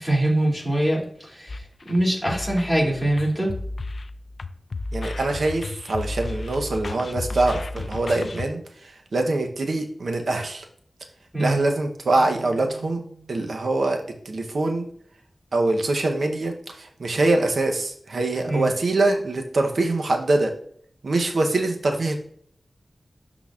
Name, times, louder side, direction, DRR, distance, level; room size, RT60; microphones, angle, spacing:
voice 1, 0.0-3.5 11.3-11.6 18.5-18.7, right 1 dB, ahead, -4 dB, 2.7 m, -23 dB
sound 1, 1.5-8.5, left 2 dB, 65° left, 0.4 m, -33 dB
voice 2, 4.9-10.7 11.4-13.0 13.3-14.9 15.5-20.5 21.0-22.2, right 2 dB, 85° right, 4 dB, 0.8 m, -24 dB
Keyboard (musical), 12.1-14.0, right 5 dB, 60° right, 2.1 m, -46 dB
11.5 x 3.9 x 2.4 m, 0.63 s
wide cardioid pair, 90°, 0 cm